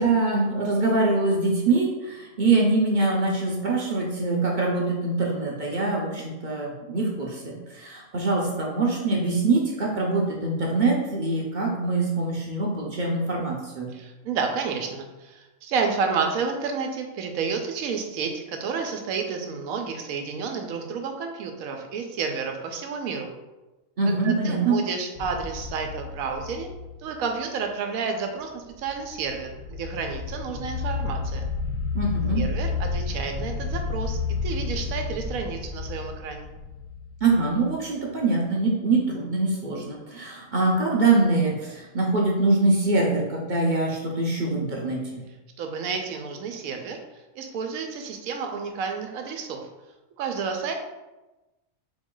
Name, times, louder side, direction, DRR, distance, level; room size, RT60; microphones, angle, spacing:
voice 1, 0.0-13.9 24.0-24.8 31.9-32.4 37.2-45.2, right 3 dB, 45° right, -2 dB, 0.7 m, -24 dB
voice 2, 13.9-23.3 24.0-26.7 27.0-31.5 32.3-36.5 45.6-49.7 50.2-50.7, right 5 dB, 85° right, 4 dB, 1.1 m, -30 dB
sound 1, 25.2-27.4 28.8-37.7, left 4 dB, 80° left, 1.1 m, -31 dB
4.1 x 3.1 x 3.7 m, 1.1 s
omnidirectional pair, 1.4 m